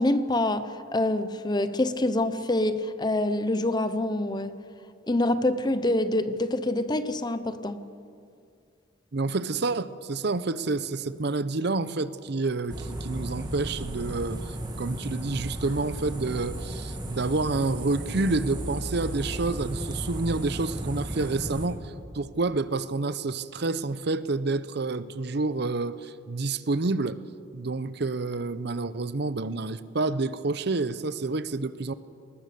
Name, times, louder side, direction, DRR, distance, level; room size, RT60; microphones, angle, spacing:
voice 1, 0.0-4.6 5.1-7.8, left 1 dB, 20° left, 0.8 m, -26 dB
voice 2, 9.1-27.2 27.5-31.9, right 3 dB, 60° right, 0.7 m, -29 dB
sound 1, 12.7-21.7, right 1 dB, 25° right, 2.4 m, -35 dB
20.5 x 19.5 x 6.9 m
head